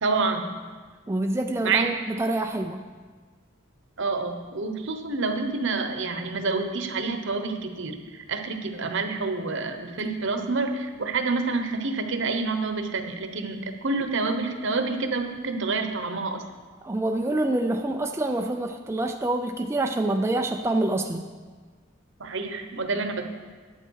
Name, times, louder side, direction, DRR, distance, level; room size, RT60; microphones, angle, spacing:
voice 1, 0.0-0.6 1.6-1.9 4.0-16.4 22.2-23.3, right 3 dB, 65° right, 6 dB, 1.0 m, -28 dB
voice 2, 1.1-2.8 16.8-21.3, right 2 dB, 15° right, 4 dB, 0.4 m, -26 dB
11.0 x 8.7 x 4.7 m, 1.4 s
head